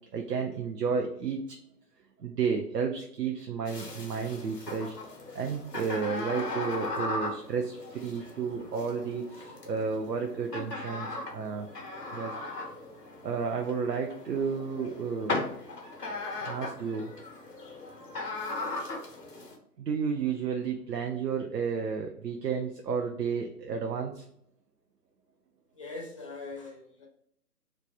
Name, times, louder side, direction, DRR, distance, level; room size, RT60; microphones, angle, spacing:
voice 1, 0.1-1.4 2.2-11.7 12.1-12.7 13.2-15.4 16.4-17.1 19.8-24.2, right 5 dB, 90° right, 3 dB, 0.6 m, -32 dB
sound 1, 3.7-19.6, left 2 dB, 90° left, 1.1 m, -38 dB
voice 2, 25.8-27.1, left 3 dB, 20° left, -4 dB, 0.5 m, -41 dB
3.1 x 2.1 x 2.5 m, 0.69 s
figure-of-eight pair, 135°, 47 cm